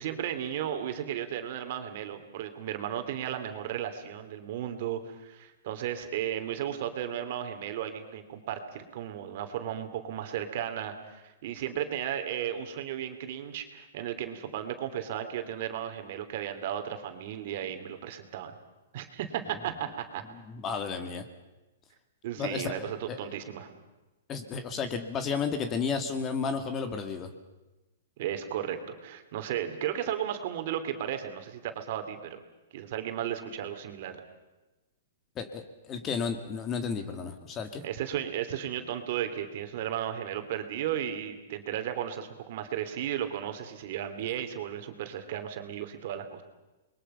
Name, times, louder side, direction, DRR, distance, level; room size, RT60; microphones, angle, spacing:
voice 1, 0.0-18.5 18.9-20.2 22.2-23.7 28.2-32.4 32.7-34.2 37.8-46.4, right 10 dB, 55° right, 7 dB, 2.8 m, -34 dB
voice 2, 20.5-21.2 22.4-23.3 24.3-27.3 35.4-37.8, left 5 dB, 25° left, 8 dB, 2.1 m, -33 dB
28.5 x 22.0 x 5.6 m, 1.1 s
hypercardioid pair, 145°, 0 cm